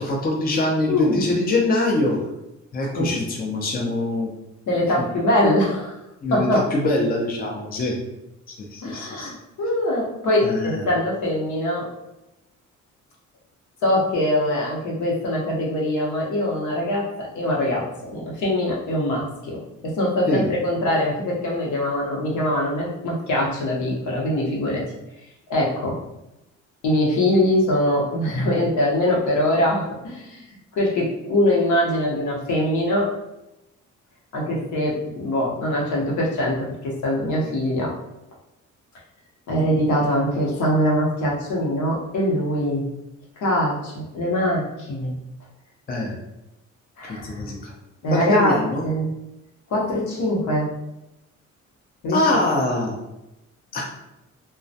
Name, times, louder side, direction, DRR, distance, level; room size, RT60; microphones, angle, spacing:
voice 1, 0.0-2.2 2.7-4.3 6.2-8.0 8.5-9.3 10.4-10.8 20.3-20.5 45.9-46.2 47.0-47.7 48.1-48.9 52.1-53.0 53.7-53.8, left 2 dB, 30° left, -2 dB, 0.5 m, -23 dB
voice 2, 0.9-1.2 2.9-3.1 4.7-6.0 6.3-6.6 8.8-11.9 13.8-17.8 18.1-24.8 25.5-26.0 26.8-30.4 30.8-33.1 34.3-37.9 39.5-42.8 43.4-45.1 47.0-47.4 48.0-48.6 48.8-49.1 49.7-50.7 52.0-52.2, left 1 dB, 75° left, -3 dB, 0.8 m, -23 dB
2.2 x 2.1 x 2.6 m, 0.93 s
cardioid pair, 90°, 30 cm